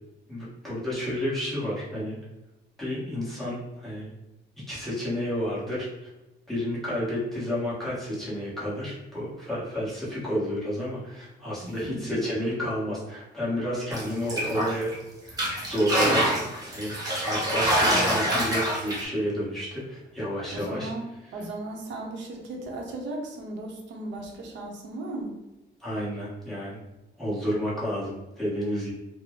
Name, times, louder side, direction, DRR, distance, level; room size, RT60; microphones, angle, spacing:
voice 1, 0.3-2.2 2.8-4.1 4.7-5.9 6.5-14.9 15.3-16.3 16.6-16.9 17.2-20.9 25.8-26.8 27.2-28.9, equal, ahead, -9 dB, 1.1 m, -30 dB
voice 2, 11.6-12.0 17.8-18.2 20.5-25.3, right 2 dB, 65° right, 0 dB, 0.8 m, -36 dB
sound 1, 13.9-14.9 15.3-19.0, right 1 dB, 20° right, 0.8 m, -25 dB
4.1 x 2.1 x 3.0 m, 0.98 s
cardioid pair, 175°, 20 cm